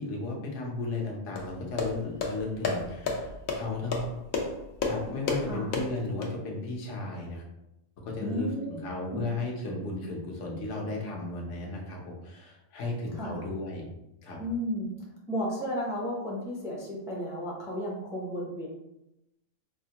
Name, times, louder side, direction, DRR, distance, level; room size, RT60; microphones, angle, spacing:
voice 1, 0.0-4.1 4.8-7.4 8.0-13.9 14.2-14.4, left 2 dB, 70° left, -1 dB, 1.1 m, -35 dB
sound 1, 1.4-6.3, left 3 dB, 90° left, 1.1 m, -32 dB
voice 2, 8.2-9.2 13.1-13.4 14.4-14.9 15.3-18.7, equal, 5° right, -4 dB, 0.4 m, -33 dB
4.8 x 2.1 x 2.8 m, 0.89 s
omnidirectional pair, 1.4 m